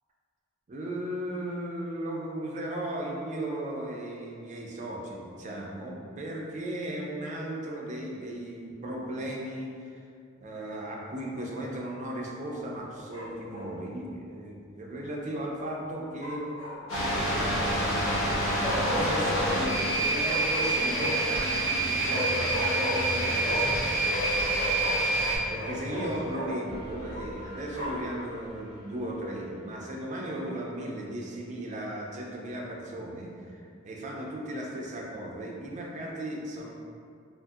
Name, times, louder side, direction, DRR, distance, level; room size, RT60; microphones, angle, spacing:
voice 1, 0.7-10.0 10.4-16.4 17.1-18.5 18.8-24.2 25.5-36.7, right 1 dB, 35° right, -2 dB, 0.4 m, -36 dB
Bark, 13.1-13.7 16.2-17.3 18.6-19.5 20.2-21.3 22.1-23.8 24.1-26.5 27.1-28.1, left 1 dB, 50° left, 1.0 m, -34 dB
sound 1, 16.9-25.4, right 2 dB, 85° left, 0.9 m, -27 dB
sound 2, 17.3-30.0, equal, 30° left, 0.5 m, -42 dB
2.6 x 2.5 x 2.4 m, 2.3 s
head